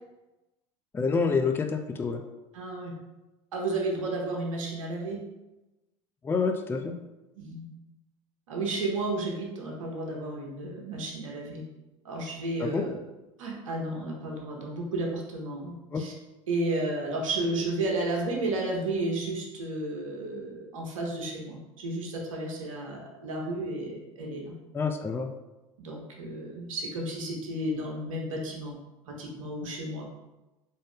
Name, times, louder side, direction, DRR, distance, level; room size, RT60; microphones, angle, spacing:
voice 1, 0.9-2.2 6.2-6.9 12.6-12.9 15.9-16.0 24.7-25.3, left 4 dB, 15° left, 6 dB, 0.3 m, -27 dB
voice 2, 2.5-2.9 3.5-5.2 7.4-7.7 8.5-11.6 12.0-13.0 13.4-16.1 16.5-24.5 25.8-28.7 29.1-30.1, right 2 dB, 80° right, -1 dB, 0.9 m, -32 dB
3.6 x 2.6 x 3.5 m, 1.0 s
hypercardioid pair, 75°, 17 cm